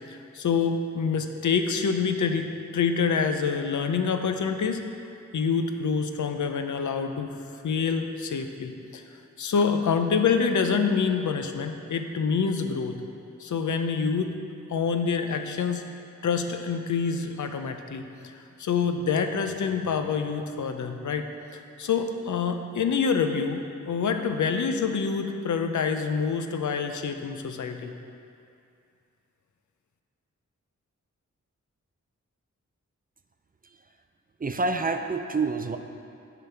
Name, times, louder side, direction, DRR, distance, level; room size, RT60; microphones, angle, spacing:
voice 1, 0.1-2.5 2.7-4.8 5.3-7.3 7.6-9.0 9.4-13.0 13.4-14.4 14.7-15.8 16.2-18.3 18.6-21.3 21.5-27.9, left 5 dB, 75° left, 6 dB, 0.6 m, -26 dB
voice 2, 34.4-35.8, right 3 dB, 30° right, 7 dB, 0.4 m, -27 dB
9.1 x 3.9 x 5.6 m, 2.5 s
wide cardioid pair, 85°, 30 cm